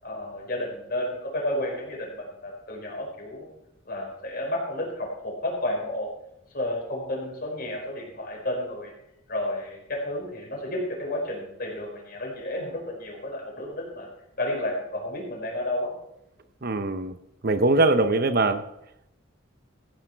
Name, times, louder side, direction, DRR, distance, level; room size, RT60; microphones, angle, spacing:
voice 1, 0.0-3.5 3.8-6.1 6.5-8.9 9.3-14.1 14.4-15.9, left 1 dB, 50° left, 0 dB, 5.0 m, -31 dB
voice 2, 16.6-17.2 17.4-18.7, right 2 dB, 50° right, 10 dB, 0.7 m, -22 dB
15.0 x 10.0 x 4.6 m, 0.82 s
head